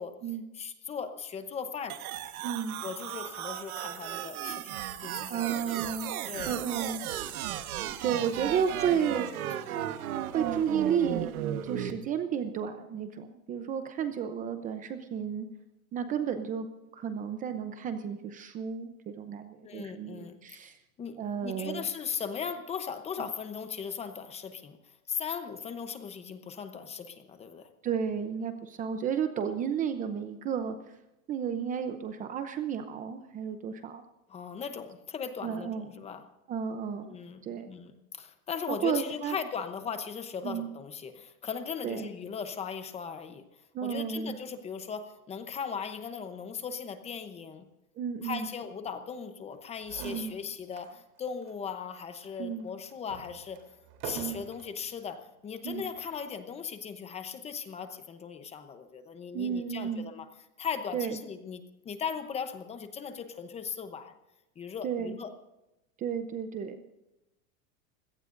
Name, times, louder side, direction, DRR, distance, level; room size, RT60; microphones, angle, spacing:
voice 1, 0.5-2.0 2.8-5.8 6.3-6.6 8.4-8.6 8.9-9.0 9.8-9.9 19.6-20.4 21.0-24.8 25.1-27.7 34.3-36.2 37.1-43.4 43.8-47.7 48.2-53.6 54.0-60.3 60.6-64.1 64.6-65.3, left 6 dB, 15° left, 9 dB, 0.8 m, -38 dB
sound 1, 1.9-11.9, right 11 dB, 90° right, 1.4 m, -35 dB
voice 2, 2.4-2.8 5.3-6.1 6.4-7.0 8.0-9.2 10.3-11.3 11.6-15.5 15.9-16.7 16.9-20.8 21.2-21.9 27.8-30.8 31.3-34.0 35.4-35.9 36.5-37.2 37.4-37.7 38.7-39.4 40.4-40.7 41.8-42.1 43.7-44.4 48.0-48.5 50.0-50.3 52.4-52.7 54.1-54.4 55.6-55.8 59.3-60.1 60.9-61.2 64.8-65.2 66.0-66.8, right 8 dB, 20° right, 8 dB, 0.7 m, -32 dB
sound 2, 49.5-49.6 49.8-51.0 51.4-51.5 52.2-54.8 55.5-55.9, right 6 dB, 45° right, 3.4 m, -45 dB
25.5 x 17.5 x 2.6 m, 0.94 s
supercardioid pair, 160°, 42 cm